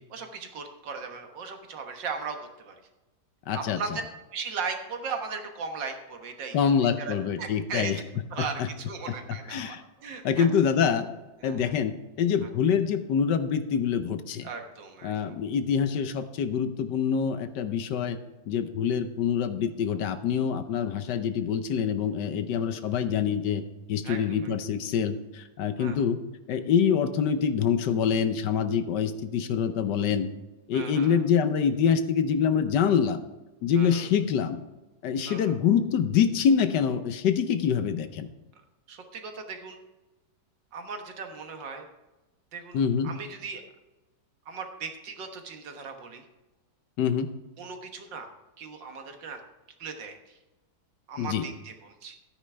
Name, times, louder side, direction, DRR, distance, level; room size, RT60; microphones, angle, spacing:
voice 1, 0.1-2.8 3.5-4.0 4.3-7.9 8.3-10.5 11.4-11.7 12.4-12.5 14.4-15.3 24.0-24.5 25.8-26.0 30.7-31.2 33.8-34.1 35.3-35.6 38.9-39.8 40.7-41.9 42.5-42.8 43.0-43.6 44.5-46.2 47.6-48.3 48.6-49.4 49.8-50.4 51.1-52.2, right 5 dB, 75° right, 5 dB, 2.0 m, -37 dB
voice 2, 3.5-3.8 6.5-8.0 8.4-8.5 9.5-9.8 10.1-11.1 11.4-14.5 15.0-18.2 18.5-23.6 23.9-26.2 26.5-30.3 30.7-33.2 33.6-34.6 35.0-38.3 42.7-43.1 47.0-47.3 51.2-51.5, left 7 dB, 70° left, 10 dB, 1.3 m, -25 dB
13.0 x 9.7 x 3.4 m, 1.1 s
omnidirectional pair, 2.0 m